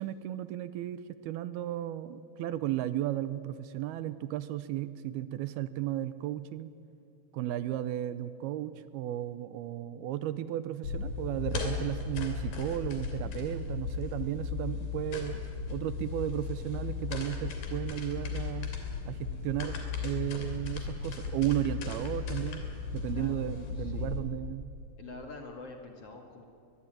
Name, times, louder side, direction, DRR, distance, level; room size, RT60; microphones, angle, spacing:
voice 1, 0.0-6.7 7.3-15.4 15.7-18.7 19.1-19.8 20.0-22.7 22.9-24.7, right 13 dB, 80° right, 14 dB, 2.6 m, -34 dB
sound 1, 10.8-24.2, left 5 dB, 65° left, 4.7 m, -36 dB
voice 2, 19.0-19.6 23.1-23.4 23.8-24.2 25.0-26.4, left 3 dB, 45° left, 3 dB, 2.5 m, -47 dB
22.0 x 22.0 x 9.1 m, 2.7 s
omnidirectional pair, 4.6 m